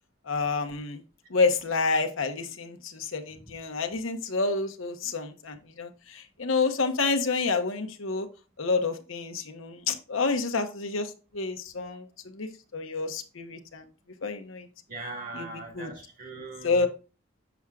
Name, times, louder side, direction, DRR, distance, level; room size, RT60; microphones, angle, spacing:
voice 1, 0.3-1.0 1.3-8.3 8.6-13.9 14.2-14.7 15.3-15.5 15.7-15.9 16.6-16.9, left 4 dB, 85° left, 1.0 m, -29 dB
voice 2, 14.9-16.9, right 2 dB, 40° right, 1.8 m, -40 dB
7.1 x 6.0 x 2.4 m
head